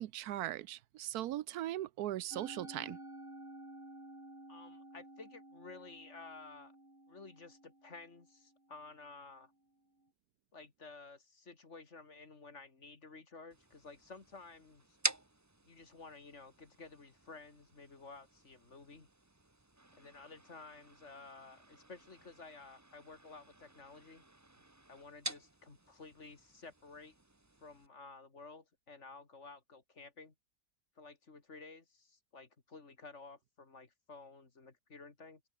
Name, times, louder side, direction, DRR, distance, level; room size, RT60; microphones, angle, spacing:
voice 1, 0.0-3.0, right 13 dB, 85° right, 1.2 m, -39 dB
Musical instrument, 2.3-8.7, right 1 dB, 40° right, 7.7 m, -53 dB
voice 2, 4.5-6.7 7.1-9.5 10.5-15.0 15.6-19.1 20.0-24.2 24.9-27.1 27.6-30.3 31.0-35.4, left 4 dB, 50° left, 2.7 m, -53 dB
sound 1, 13.5-27.9, right 2 dB, 10° right, 1.2 m, -47 dB
open air
omnidirectional pair, 1.6 m